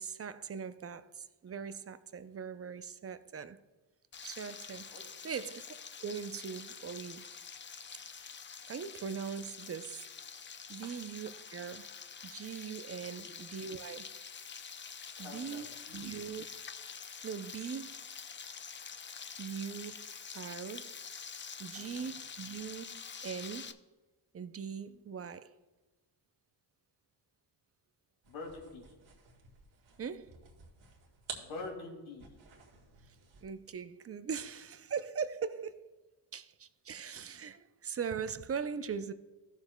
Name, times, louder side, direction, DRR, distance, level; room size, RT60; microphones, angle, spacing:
voice 1, 0.0-3.6 4.2-4.9 5.2-5.7 6.0-7.3 8.7-10.1 10.7-11.9 12.2-14.1 15.2-16.5 17.2-18.0 19.4-20.9 21.6-23.8 24.3-25.6 30.0-30.4 33.1-33.2 33.4-35.9 36.3-39.1, right 6 dB, 30° right, 0.5 m, -41 dB
Frying (food), 4.1-23.7, left 6 dB, 25° left, 0.4 m, -47 dB
voice 2, 4.9-5.3 13.2-13.4 15.1-16.1 21.7-22.1 24.9-25.0 28.2-28.9 31.4-32.3, left 3 dB, 75° left, 2.6 m, -46 dB
sound 1, 28.2-33.6, right 5 dB, 70° right, 1.8 m, -51 dB
14.5 x 7.1 x 2.2 m
cardioid pair, 80°, 48 cm